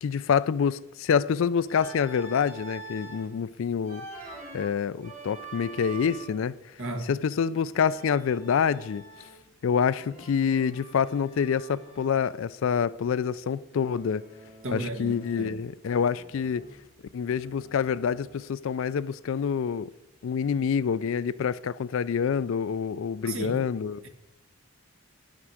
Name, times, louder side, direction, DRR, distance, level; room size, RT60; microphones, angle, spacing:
voice 1, 0.0-4.0 4.5-6.6 7.0-9.0 9.6-14.2 14.7-16.7 17.1-19.9 20.2-24.0, left 7 dB, 60° left, 0.3 m, -27 dB
Organ, 1.7-3.3 3.8-6.5 7.8-9.5 9.9-12.2 13.7-15.5 15.8-18.6, right 2 dB, 30° right, 2.3 m, -46 dB
voice 2, 6.8-7.1 14.6-15.5 23.2-23.6, right 1 dB, 60° right, 1.5 m, -34 dB
11.0 x 6.0 x 6.3 m
head